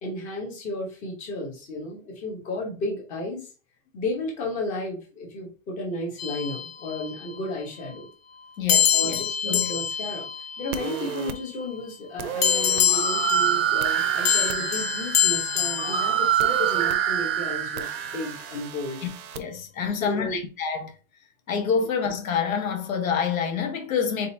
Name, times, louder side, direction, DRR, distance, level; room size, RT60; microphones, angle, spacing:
voice 1, 0.0-3.5 3.9-8.1 8.9-10.3 10.6-19.0 19.8-20.4, left 1 dB, 15° left, 1.0 m, -33 dB
sound 1, 6.2-7.4 8.7-11.4 12.4-16.9, left 9 dB, 45° left, 0.6 m, -26 dB
voice 2, 8.6-9.8 19.0-19.1 19.4-20.9 21.5-24.3, left 6 dB, 70° left, 1.4 m, -27 dB
sound 2, 10.7-11.4 12.2-12.8 13.8-14.6 16.4-17.0 17.8-19.4, right 9 dB, 90° right, 0.7 m, -35 dB
sound 3, 12.8-18.6, right 11 dB, 45° right, 0.5 m, -26 dB
4.1 x 3.9 x 2.8 m
supercardioid pair, 165°, 43 cm